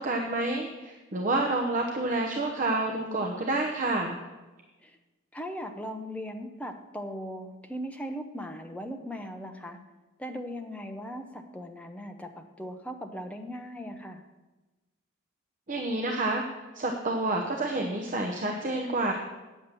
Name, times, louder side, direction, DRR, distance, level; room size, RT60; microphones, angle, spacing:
voice 1, 0.0-4.2 15.7-16.4 16.7-19.1, right 2 dB, 35° right, 1 dB, 0.8 m, -29 dB
voice 2, 5.3-9.8 10.2-14.2, equal, 5° left, 4 dB, 0.7 m, -38 dB
9.4 x 7.3 x 6.8 m, 1.2 s
head